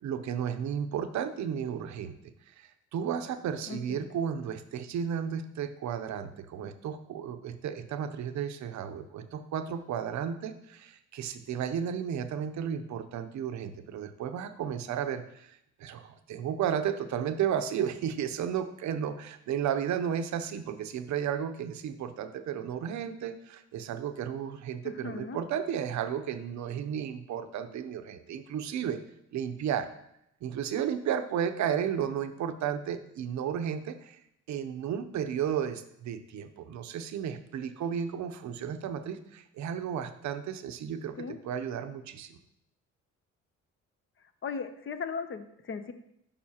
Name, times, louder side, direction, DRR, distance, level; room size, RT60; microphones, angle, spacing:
voice 1, 0.0-2.2 2.5-29.0 29.3-29.9 30.4-34.2 34.5-42.4, right 8 dB, 70° right, 9 dB, 0.6 m, -33 dB
voice 2, 3.7-4.1 24.8-25.4 41.2-41.4 44.4-45.9, left 5 dB, 45° left, 10 dB, 0.6 m, -37 dB
8.4 x 5.4 x 2.8 m, 0.77 s
cardioid pair, 90°, 30 cm